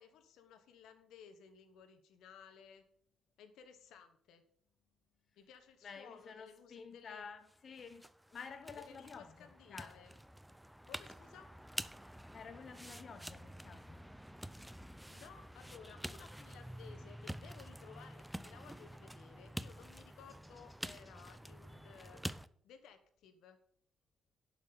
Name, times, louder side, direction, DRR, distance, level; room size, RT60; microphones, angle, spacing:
voice 1, 0.0-2.8 3.4-4.4 5.4-7.3 8.7-10.1 10.8-11.5 15.1-22.2 22.6-23.6, left 7 dB, 85° left, 1.2 m, -58 dB
voice 2, 5.8-10.0 12.3-14.0, left 5 dB, 50° left, 0.8 m, -51 dB
sound 1, 7.5-22.5, equal, 5° right, 0.4 m, -48 dB
11.0 x 6.0 x 5.8 m
cardioid pair, 90°, 0 cm